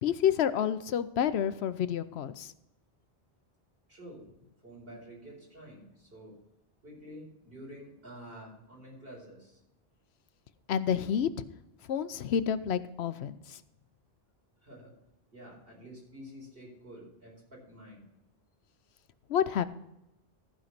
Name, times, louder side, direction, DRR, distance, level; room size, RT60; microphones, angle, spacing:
voice 1, 0.0-2.5 10.7-11.3 11.9-13.6 19.3-19.7, left 9 dB, 80° left, 13 dB, 0.9 m, -29 dB
voice 2, 3.9-4.3 4.6-6.3 6.8-9.6 14.6-14.9 15.3-18.0, equal, 65° right, -3 dB, 4.8 m, -49 dB
14.5 x 5.2 x 5.9 m, 0.88 s
omnidirectional pair, 1.1 m